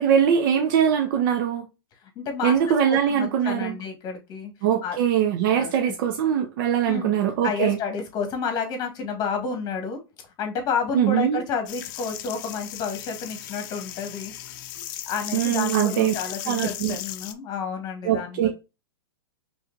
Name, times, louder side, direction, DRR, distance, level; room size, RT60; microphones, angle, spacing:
voice 1, 0.0-1.6 2.4-3.8 4.6-7.8 10.9-11.4 15.3-16.1 16.4-17.0 18.0-18.5, right 9 dB, 55° right, 0.8 m, -22 dB
voice 2, 2.1-4.5 4.8-5.0 5.5-5.9 6.9-7.2 7.4-10.0 10.4-14.3 15.1-18.5, left 5 dB, 30° left, 1.7 m, -30 dB
sound 1, 11.7-17.3, left 13 dB, 55° left, 0.6 m, -36 dB
5.0 x 3.3 x 2.5 m
hypercardioid pair, 120°, 13 cm